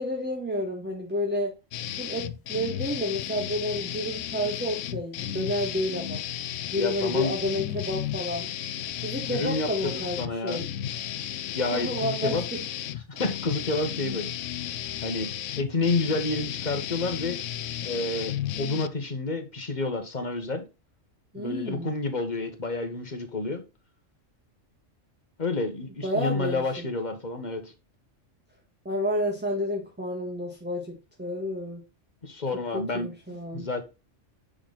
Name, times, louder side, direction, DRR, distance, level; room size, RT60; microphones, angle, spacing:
voice 1, 0.0-1.5 2.0-6.2 6.7-8.5 9.0-10.7 11.7-12.6 21.3-21.9 26.0-26.9 28.8-31.8 32.7-33.7, left 1 dB, 10° right, 1.5 m, -30 dB
sound 1, 1.7-18.9, left 11 dB, 75° left, 1.0 m, -34 dB
voice 2, 6.8-7.3 9.3-10.7 11.5-12.4 13.1-14.3 15.0-15.3 15.6-17.4 17.8-20.6 21.3-23.6 25.4-27.7 32.2-33.1 33.5-33.8, left 3 dB, 35° left, 1.6 m, -29 dB
9.9 x 4.0 x 4.1 m
omnidirectional pair, 1.3 m